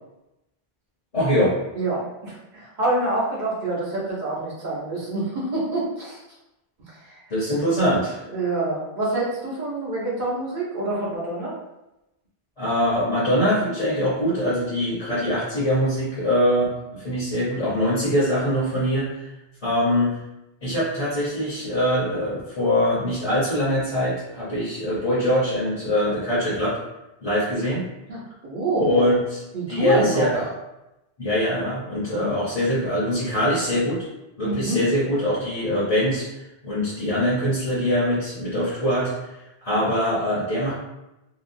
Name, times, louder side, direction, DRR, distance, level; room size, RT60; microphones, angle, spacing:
voice 1, 1.1-1.6 7.3-8.2 12.6-19.3 19.6-20.2 20.6-26.8 27.2-27.9 28.8-29.4 29.7-30.5 31.2-34.0 34.4-39.1 39.6-40.7, equal, 40° left, -8 dB, 0.9 m, -23 dB
voice 2, 1.7-6.2 7.1-7.2 8.3-11.5 28.1-29.1 29.5-30.3 32.0-32.4 34.4-34.8, right 2 dB, 50° right, -6 dB, 1.0 m, -26 dB
2.8 x 2.4 x 2.6 m, 0.93 s
omnidirectional pair, 1.0 m